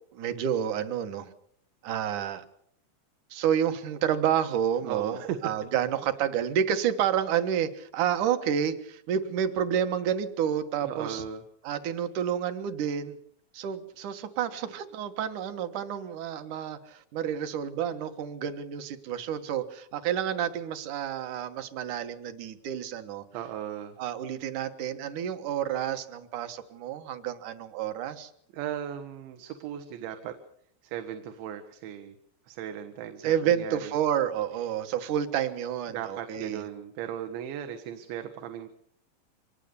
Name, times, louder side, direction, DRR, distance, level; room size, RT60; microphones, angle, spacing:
voice 1, 0.1-1.3 1.8-2.4 3.3-11.2 11.6-13.2 13.5-23.2 24.0-28.3 33.2-36.6, right 9 dB, 65° right, 9 dB, 2.1 m, -29 dB
voice 2, 4.8-5.4 10.9-11.4 23.3-24.0 28.5-30.4 30.8-32.2 32.5-33.9 35.9-38.7, right 10 dB, 80° right, 7 dB, 3.6 m, -37 dB
25.0 x 19.0 x 6.9 m, 0.65 s
omnidirectional pair, 5.2 m